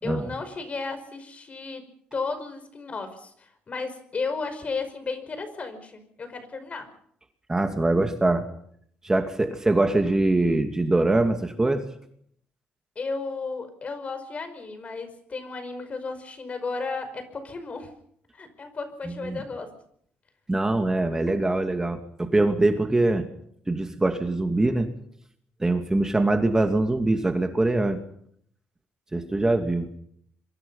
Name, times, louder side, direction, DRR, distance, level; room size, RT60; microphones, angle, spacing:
voice 1, 0.0-1.8 2.1-6.9 13.0-17.9 18.3-19.7, left 4 dB, 35° left, 10 dB, 5.4 m, -34 dB
voice 2, 7.5-8.4 9.0-11.9 19.2-19.4 20.5-23.3 23.7-24.9 25.6-28.0 29.1-29.9, right 2 dB, 15° right, 5 dB, 2.5 m, -23 dB
26.5 x 23.5 x 5.6 m, 0.67 s
cardioid pair, 110°, 4 cm